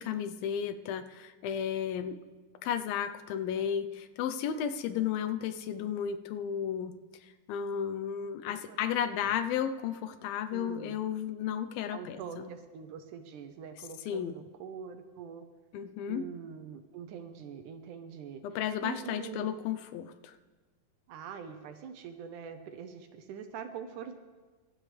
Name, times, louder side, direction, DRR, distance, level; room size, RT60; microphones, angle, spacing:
voice 1, 0.0-2.2 2.6-7.0 7.5-12.5 14.1-14.4 15.7-16.2 18.4-20.4, left 9 dB, 90° left, 9 dB, 2.6 m, -33 dB
voice 2, 8.5-8.8 9.1-9.4 10.5-11.0 11.9-15.5 16.1-18.4 18.8-19.5 21.1-24.2, right 7 dB, 75° right, 7 dB, 2.0 m, -44 dB
25.5 x 12.5 x 3.3 m, 1.3 s
omnidirectional pair, 4.1 m